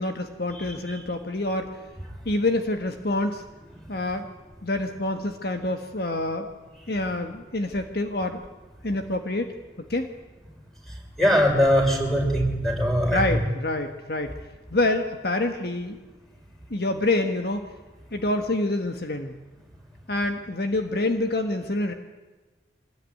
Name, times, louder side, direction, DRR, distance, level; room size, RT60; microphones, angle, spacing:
voice 1, 0.0-1.7 2.2-3.4 3.9-4.3 4.6-6.5 6.9-8.4 8.8-9.5 9.9-10.1 13.0-14.3 14.7-16.0 16.7-17.7 18.1-19.3 20.1-21.9, left 2 dB, 55° left, 5 dB, 1.5 m, -27 dB
voice 2, 11.2-13.4, equal, ahead, 0 dB, 5.9 m, -21 dB
24.5 x 19.5 x 9.4 m, 1.2 s
head